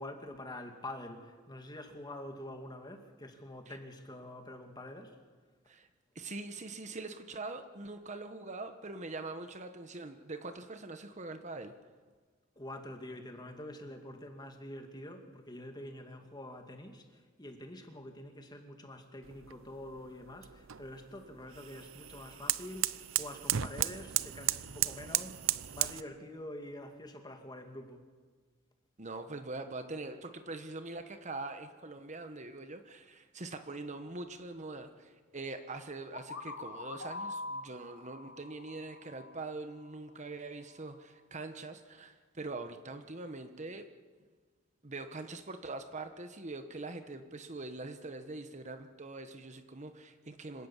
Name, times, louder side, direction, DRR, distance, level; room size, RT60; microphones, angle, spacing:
voice 1, 0.0-5.2 12.6-28.0, left 1 dB, 20° left, 5 dB, 2.3 m, -46 dB
voice 2, 6.1-11.7 29.0-43.9 44.8-50.7, right 3 dB, 35° right, 8 dB, 1.2 m, -43 dB
sound 1, 19.2-26.0, right 13 dB, 90° right, 0.7 m, -35 dB
sound 2, 36.1-39.9, left 3 dB, 70° left, 2.9 m, -44 dB
26.0 x 17.5 x 7.4 m, 1.5 s
head